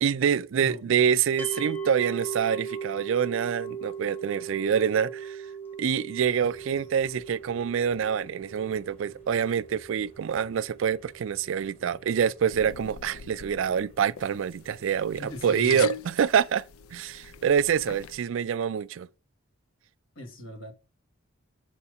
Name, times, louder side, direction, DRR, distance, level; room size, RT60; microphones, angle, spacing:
voice 1, 0.0-5.4 5.8-16.6 16.9-19.1, right 7 dB, 65° right, 0.3 m, -26 dB
voice 2, 0.6-0.9 15.2-15.9 20.1-20.7, equal, 65° left, 1.6 m, -39 dB
sound 1, 1.4-12.5, right 6 dB, 10° left, 0.5 m, -39 dB
sound 2, 6.2-15.5, left 1 dB, 30° left, 2.5 m, -57 dB
sound 3, 12.5-18.2, left 7 dB, 85° left, 0.4 m, -42 dB
7.8 x 4.2 x 4.7 m
head